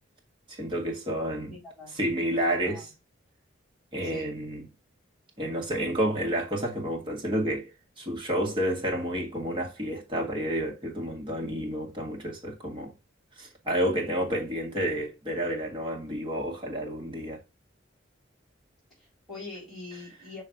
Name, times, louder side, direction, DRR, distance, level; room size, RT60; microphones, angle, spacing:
voice 1, 0.5-1.5 2.0-2.9 3.9-4.6 5.4-7.7 8.0-12.9 13.4-17.4, equal, 25° right, 1.8 m, -30 dB
voice 2, 1.5-2.0 2.6-2.8 4.0-4.3 19.0-20.4, left 2 dB, ahead, 3.8 m, -43 dB
5.9 x 3.2 x 5.1 m
head